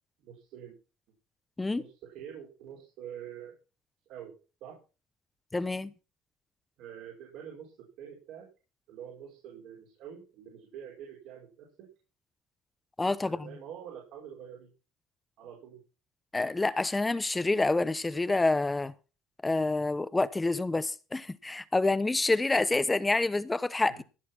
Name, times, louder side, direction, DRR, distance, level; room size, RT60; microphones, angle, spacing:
voice 1, 0.2-0.8 1.6-3.6 4.1-4.4 4.6-4.8 6.8-8.5 8.9-11.9 13.2-14.7 15.4-15.8 23.9-24.0, right 9 dB, 75° right, 5.2 m, -46 dB
voice 2, 5.5-5.9 13.0-13.4 16.3-18.9 19.4-24.0, left 2 dB, 15° left, 0.9 m, -27 dB
16.0 x 6.8 x 5.9 m
supercardioid pair, 90°, 0 cm